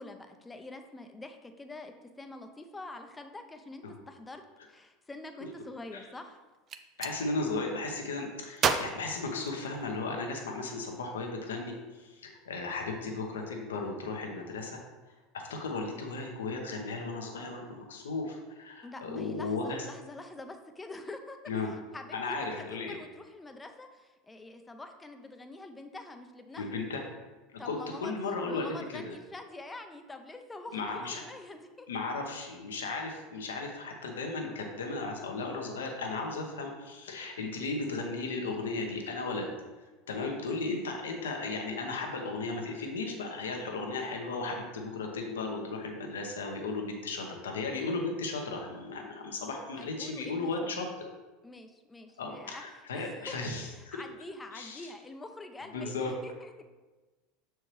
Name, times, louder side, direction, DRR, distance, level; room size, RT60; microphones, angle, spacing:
voice 1, 0.0-4.4 4.7-6.4 18.8-26.8 27.6-31.9 49.8-50.7 51.4-52.6 52.9-56.7, left 2 dB, 15° left, 6 dB, 0.6 m, -46 dB
Gunshot gunfire, 6.5-7.2 8.6-10.1, right 6 dB, 40° right, 0.4 m, -32 dB
voice 2, 7.0-14.8 15.3-19.8 21.5-21.7 22.1-23.0 26.5-27.0 27.5-29.1 30.7-31.2 31.9-39.5 40.1-50.9 52.2-54.0 54.5-54.9 55.7-56.1, left 3 dB, 90° left, 2 dB, 0.9 m, -35 dB
6.4 x 4.5 x 3.2 m, 1.2 s
hypercardioid pair, 95°, 0 cm